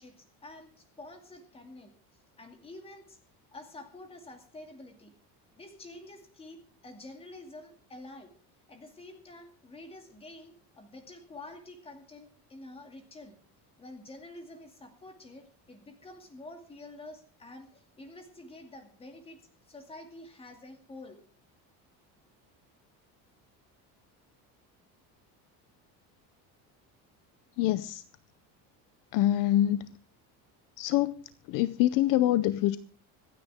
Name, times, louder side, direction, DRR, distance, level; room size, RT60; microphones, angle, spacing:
voice 1, 0.0-1.9 2.4-3.2 3.5-5.1 5.6-8.3 8.7-13.4 13.8-21.2, left 2 dB, 15° left, 6 dB, 2.3 m, -48 dB
voice 2, 27.6-28.0 29.1-29.9 30.8-31.2 31.4-32.8, left 13 dB, 55° left, 15 dB, 0.6 m, -25 dB
25.5 x 9.4 x 3.5 m, 0.41 s
cardioid pair, 175°, 38 cm